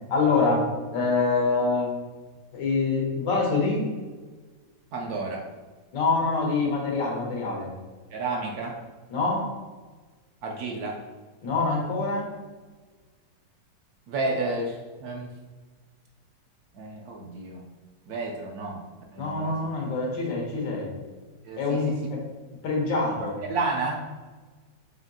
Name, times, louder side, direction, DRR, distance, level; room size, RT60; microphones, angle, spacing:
voice 1, 0.1-0.6 0.9-1.9 2.5-3.9 5.9-7.7 9.1-9.5 11.4-12.3 19.2-20.9 21.6-22.2 22.6-23.3, left 3 dB, 90° left, -2 dB, 1.7 m, -25 dB
voice 2, 4.9-5.5 8.1-8.8 10.4-11.0 14.1-15.3 16.7-17.7 18.1-18.8 19.1-19.7 21.4-21.9 23.2-24.0, right 3 dB, 70° right, 0 dB, 0.9 m, -31 dB
5.0 x 2.7 x 2.6 m, 1.3 s
omnidirectional pair, 1.9 m